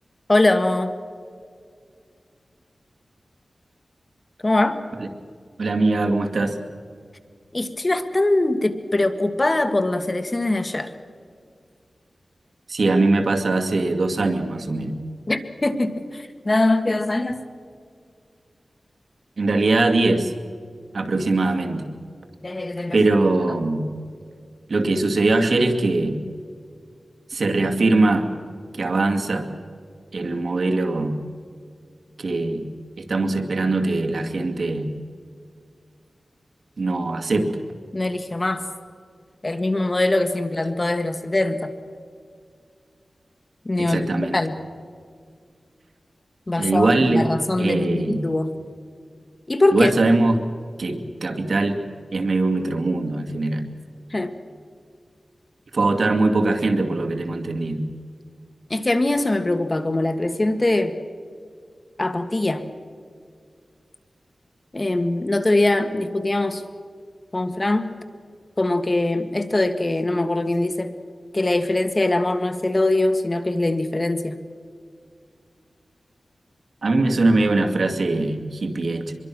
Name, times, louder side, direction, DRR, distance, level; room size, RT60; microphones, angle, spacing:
voice 1, 0.3-0.9 4.4-4.8 7.5-10.9 15.3-17.4 22.4-23.0 23.5-23.6 37.9-38.6 39.4-41.7 43.6-44.5 46.5-48.5 49.5-49.9 54.1-54.3 58.7-60.9 62.0-62.6 64.7-66.6 67.3-67.9 68.6-70.9 71.3-74.3, left 2 dB, 30° left, 8 dB, 1.7 m, -22 dB
voice 2, 5.6-6.6 12.7-15.0 19.4-20.3 20.9-21.9 22.9-23.9 24.7-26.2 27.3-28.3 28.7-29.5 30.1-31.2 32.2-32.6 33.0-34.9 36.8-37.6 43.8-44.4 46.6-47.3 47.6-48.2 49.7-50.4 50.8-51.8 52.1-53.6 55.7-57.8 76.8-79.1, right 2 dB, 70° right, 5 dB, 2.3 m, -21 dB
24.5 x 22.5 x 6.1 m, 2.2 s
wide cardioid pair, 80°, 0 cm